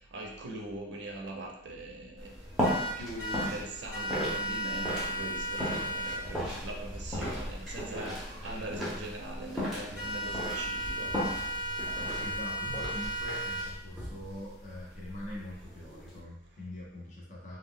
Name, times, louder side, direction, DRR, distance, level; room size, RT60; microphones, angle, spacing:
voice 1, 0.0-2.4 3.0-11.1 11.6-11.7, right 2 dB, 80° right, 1 dB, 0.5 m, -41 dB
sound 1, 2.2-16.2, equal, ahead, 0.6 m, -37 dB
sound 2, 2.6-3.5 3.9-6.2 9.9-13.6, right 1 dB, 90° left, 1.0 m, -35 dB
voice 2, 12.1-17.6, left 1 dB, 40° left, -5 dB, 0.6 m, -43 dB
2.2 x 2.0 x 3.5 m, 0.78 s
head